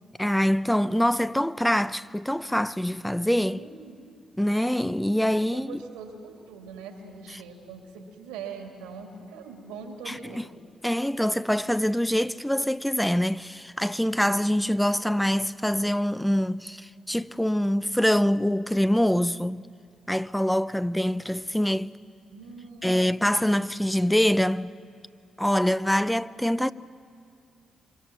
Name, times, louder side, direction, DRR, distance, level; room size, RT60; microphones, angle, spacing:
voice 1, 0.2-3.6 4.4-5.8 10.1-10.4 10.8-19.6 20.1-21.9 22.8-24.7 25.4-26.7, equal, 5° left, 0.6 m, -24 dB
voice 2, 3.5-4.1 5.5-10.4 22.3-23.0, right 5 dB, 85° right, 2.7 m, -42 dB
27.0 x 25.0 x 6.0 m
hypercardioid pair, 40°, 0 cm